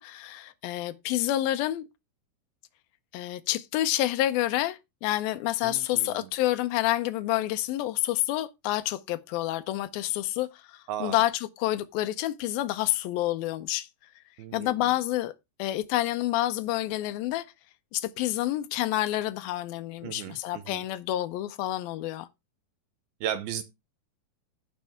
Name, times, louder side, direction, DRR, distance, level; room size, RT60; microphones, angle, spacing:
voice 1, 0.0-1.9 3.1-13.9 14.5-15.3 15.6-17.5 17.9-22.3, left 14 dB, 80° left, 2.2 m, -28 dB
voice 2, 5.6-6.3 10.9-11.2 14.4-14.8 20.0-20.8 23.2-23.6, right 10 dB, 75° right, 2.5 m, -35 dB
16.0 x 5.4 x 3.5 m
omnidirectional pair, 4.8 m